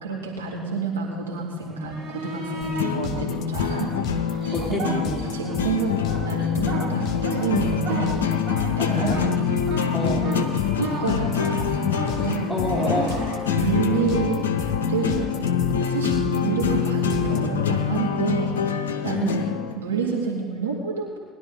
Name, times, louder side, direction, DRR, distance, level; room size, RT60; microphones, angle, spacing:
voice 1, 0.0-4.8 5.3-5.9 6.2-8.2 8.7-9.3 10.1-10.4 10.8-12.5 13.5-14.4 14.8-15.4 15.8-18.6 19.0-19.3 19.8-21.2, right 5 dB, 85° right, -2 dB, 2.0 m, -28 dB
sound 1, 1.7-2.9 3.5-5.6 5.9-14.1 16.9-17.0, right 2 dB, 50° right, 4.6 m, -35 dB
sound 2, 2.6-17.4, left 5 dB, 50° left, 1.4 m, -35 dB
sound 3, 2.8-19.7, left 7 dB, 80° left, 0.7 m, -25 dB
voice 2, 4.5-5.2 8.8-9.3 9.9-10.3 12.5-13.2 19.1-19.6, left 1 dB, ahead, -5 dB, 4.2 m, -27 dB
19.5 x 11.5 x 3.8 m, 1.5 s
figure-of-eight pair, 60°, 0 cm